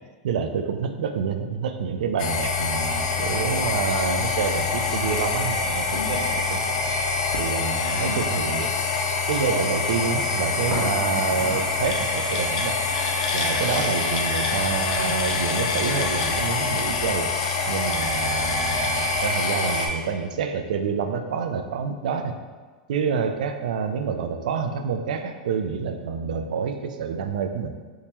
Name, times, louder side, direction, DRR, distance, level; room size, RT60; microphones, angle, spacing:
voice 1, 0.2-6.8 7.4-8.7 9.3-12.8 13.3-17.3 17.7-22.3 22.9-27.7, right 6 dB, 90° right, 7 dB, 0.3 m, -28 dB
sound 1, 2.2-19.9, left 4 dB, 80° left, 0.5 m, -25 dB
sound 2, 7.9-8.4 8.9-9.1 9.5-9.9 10.6-11.8 13.0-13.1 13.4-14.2, left 1 dB, 10° right, 0.9 m, -35 dB
3.5 x 2.8 x 2.9 m, 1.4 s
supercardioid pair, 170°, 4 cm